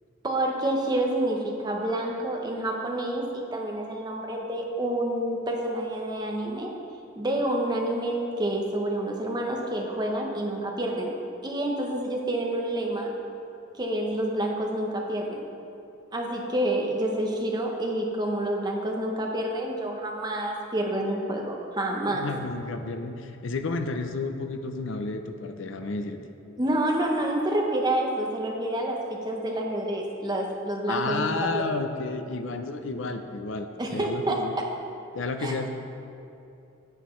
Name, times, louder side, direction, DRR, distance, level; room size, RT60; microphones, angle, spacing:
voice 1, 0.2-6.7 7.2-11.1 11.4-13.1 13.8-15.4 16.1-22.3 26.6-31.6 33.8-34.7 35.4-35.5, right 1 dB, 20° right, 0 dB, 0.8 m, -28 dB
voice 2, 22.1-26.2 30.9-34.6 35.1-35.7, left 3 dB, 60° left, 7 dB, 0.5 m, -31 dB
9.8 x 8.3 x 3.1 m, 2.7 s
head